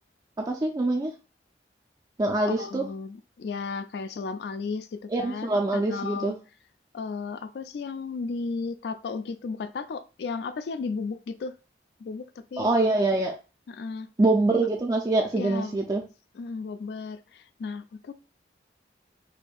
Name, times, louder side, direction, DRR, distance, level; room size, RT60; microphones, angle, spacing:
voice 1, 0.5-1.1 2.2-2.8 5.1-6.3 12.6-13.3 14.2-16.0, right 2 dB, 20° right, 0 dB, 0.3 m, -24 dB
voice 2, 2.4-6.3 6.9-11.5 12.0-12.7 13.7-14.1 15.4-15.8 16.4-18.1, left 4 dB, 65° left, 12 dB, 0.3 m, -34 dB
4.3 x 2.6 x 2.3 m, 0.32 s
head